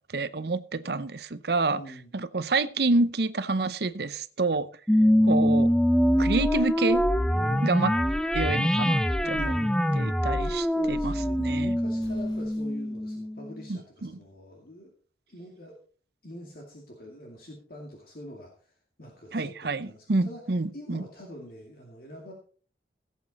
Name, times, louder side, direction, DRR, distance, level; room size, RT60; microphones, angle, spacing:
voice 1, 0.1-1.8 2.1-4.7 5.2-5.7 6.2-7.0 7.6-7.9 8.3-9.0 9.3-9.5 10.0-11.8 13.7-14.2 19.3-21.0, right 3 dB, 60° right, 0.7 m, -28 dB
voice 2, 1.7-2.1 7.3-7.7 9.2-10.1 10.4-14.9 15.3-15.8 16.2-20.4 20.7-22.3, equal, 50° left, 2.3 m, -45 dB
sound 1, 4.9-13.6, equal, 5° left, 0.4 m, -24 dB
Explosion, 11.9-13.1, equal, 25° left, 5.5 m, -55 dB
16.0 x 8.4 x 4.1 m
head